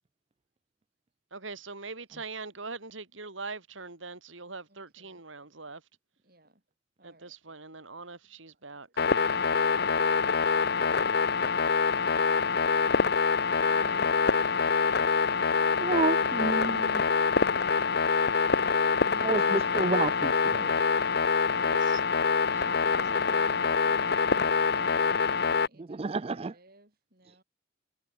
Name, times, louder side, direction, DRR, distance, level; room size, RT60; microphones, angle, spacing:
voice 1, 1.3-5.8 7.0-9.0 13.6-14.4 21.5-22.0 22.5-25.4, right 3 dB, 80° right, 3.8 m, -43 dB
voice 2, 4.7-5.2 6.2-6.6 7.0-7.4 14.7-15.4 20.6-20.7 24.9-27.4, right 1 dB, 50° right, 7.0 m, -63 dB
sound 1, 9.0-25.7, left 5 dB, 55° left, 0.8 m, -25 dB
voice 3, 15.8-17.0 19.2-20.7 25.8-26.5, right 3 dB, 30° right, 0.4 m, -30 dB
head